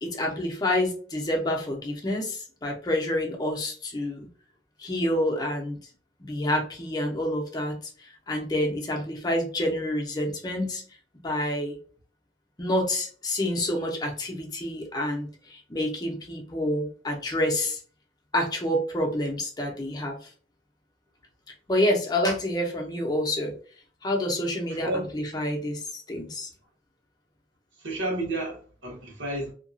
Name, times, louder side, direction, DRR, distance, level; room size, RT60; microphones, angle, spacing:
voice 1, 0.0-4.3 4.8-5.8 6.2-10.8 11.2-11.8 12.6-17.8 18.3-20.2 21.7-23.5 24.0-26.5, left 1 dB, 20° left, 0.6 m, -28 dB
voice 2, 24.7-25.1 27.8-29.5, right 1 dB, 80° right, 1.2 m, -31 dB
2.8 x 2.3 x 2.6 m
head